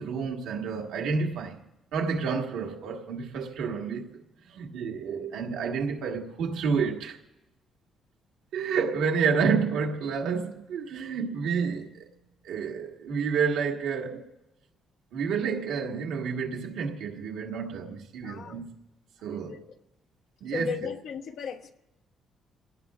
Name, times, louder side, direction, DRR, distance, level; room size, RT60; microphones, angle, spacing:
voice 1, 0.0-1.6 1.9-4.2 4.5-7.2 8.5-12.1 12.4-14.2 15.1-18.7 19.2-19.6 20.4-20.9, right 5 dB, 90° right, 1.7 m, -29 dB
voice 2, 18.2-18.6 19.3-19.7 20.5-21.7, left 7 dB, 75° left, 1.1 m, -37 dB
28.5 x 18.0 x 2.5 m
cardioid pair, 90°, 0 cm